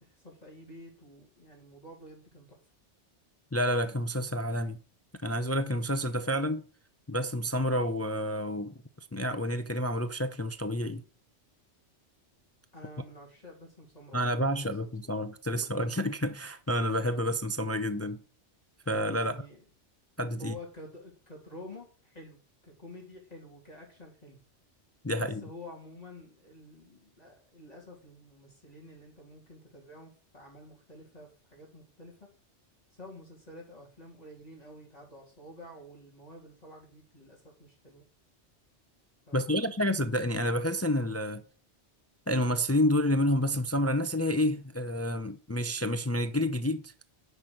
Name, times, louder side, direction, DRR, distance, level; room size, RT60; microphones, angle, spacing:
voice 1, 0.0-2.6 12.7-15.2 15.5-15.9 19.2-19.7 20.4-22.4 22.6-24.4 25.1-32.2 32.9-38.0 39.3-40.0, left 1 dB, 35° left, 3.1 m, -49 dB
voice 2, 3.5-4.8 5.2-6.6 7.1-8.7 9.1-11.0 14.1-18.2 18.9-19.4 20.2-20.5 25.0-25.4 39.3-41.4 42.3-46.9, equal, 20° left, 0.4 m, -29 dB
9.8 x 6.0 x 6.4 m
omnidirectional pair, 1.2 m